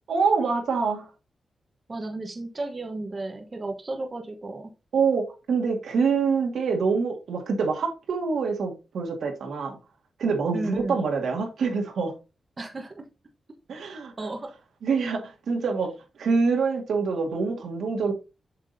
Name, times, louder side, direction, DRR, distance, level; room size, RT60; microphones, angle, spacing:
voice 1, 0.1-1.1 4.9-9.8 10.2-12.1 13.7-14.1 14.8-15.9 16.2-18.1, right 5 dB, 85° right, 1.9 m, -25 dB
voice 2, 1.9-4.7 10.5-11.0 12.6-13.0 14.2-14.5, right 2 dB, 30° right, 1.1 m, -33 dB
7.6 x 6.0 x 2.7 m
wide cardioid pair, 120°, 0 cm